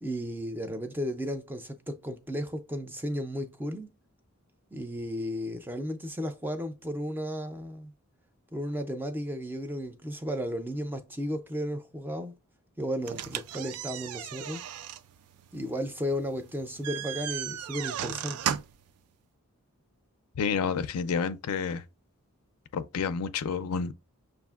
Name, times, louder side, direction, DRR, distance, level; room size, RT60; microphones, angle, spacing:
voice 1, 0.0-3.9 4.7-7.9 8.5-12.3 12.8-14.6 15.5-18.6, equal, 10° right, 0.3 m, -34 dB
sound 1, 13.0-18.9, right 10 dB, 90° right, 0.3 m, -36 dB
voice 2, 20.4-21.8 22.7-23.9, left 6 dB, 80° left, 0.4 m, -29 dB
6.1 x 2.5 x 2.3 m
head